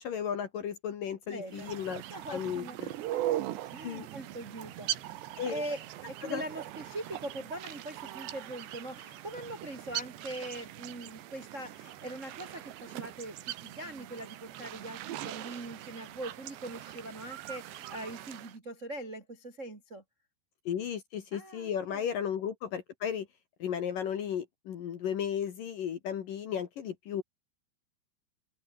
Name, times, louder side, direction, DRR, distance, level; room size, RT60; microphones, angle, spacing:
voice 1, 0.0-2.0 2.3-2.9 3.8-4.1 5.4-5.6 6.2-6.4 20.7-23.3 23.6-27.2, left 8 dB, 60° left, 2.6 m, -34 dB
voice 2, 1.3-1.7 2.1-2.8 3.1-3.4 3.7-5.1 5.5-20.0 21.3-22.1, right 1 dB, 30° right, 1.3 m, -42 dB
sound 1, 1.5-18.5, right 14 dB, 70° right, 3.3 m, -40 dB
omnidirectional pair, 5.7 m